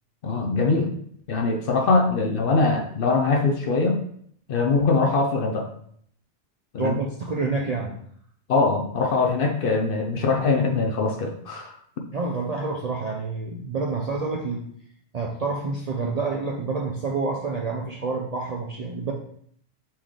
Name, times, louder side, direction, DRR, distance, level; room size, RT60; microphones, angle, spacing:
voice 1, 0.2-0.9 1.3-4.0 4.5-5.7 6.7-7.0 8.5-11.7, left 3 dB, 60° left, 4 dB, 0.7 m, -22 dB
voice 2, 6.8-7.9 12.1-14.7 15.1-19.1, right 4 dB, 55° right, -1 dB, 0.4 m, -28 dB
4.3 x 3.6 x 3.1 m, 0.64 s
omnidirectional pair, 1.2 m